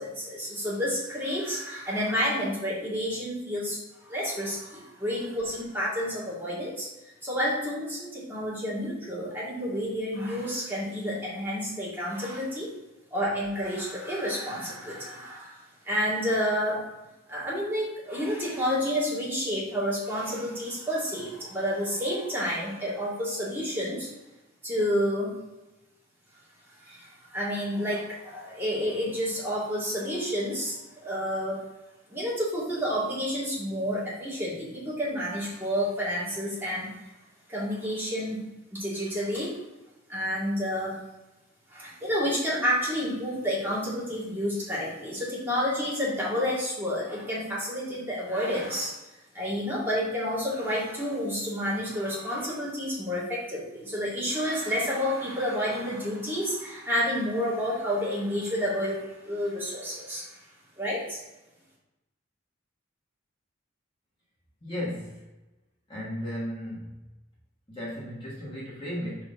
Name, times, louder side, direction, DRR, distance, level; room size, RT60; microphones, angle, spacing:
voice 1, 0.0-3.8 4.0-6.9 7.2-12.7 13.1-16.8 17.3-24.1 24.6-25.4 26.8-31.6 32.1-37.0 37.5-39.6 40.1-41.0 41.7-48.9 49.3-60.4 60.8-61.2, equal, 10° right, -8 dB, 2.3 m, -30 dB
voice 2, 64.6-65.3 65.9-67.1 67.7-69.3, equal, 25° left, -8 dB, 1.6 m, -35 dB
4.8 x 4.3 x 5.3 m, 1.0 s
head